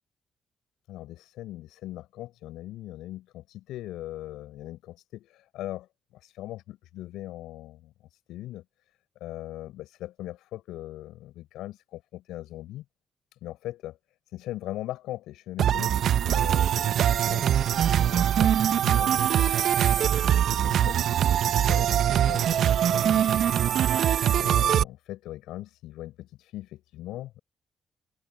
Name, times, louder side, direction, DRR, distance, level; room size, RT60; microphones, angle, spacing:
voice 1, 0.9-8.6 9.2-12.8 13.4-14.0 14.3-19.9 20.3-21.0 21.5-23.8 24.3-27.4, left 15 dB, 80° left, 6.6 m, -40 dB
sound 1, 15.6-24.8, right 10 dB, 70° right, 1.3 m, -22 dB
hypercardioid pair, 40°, 0 cm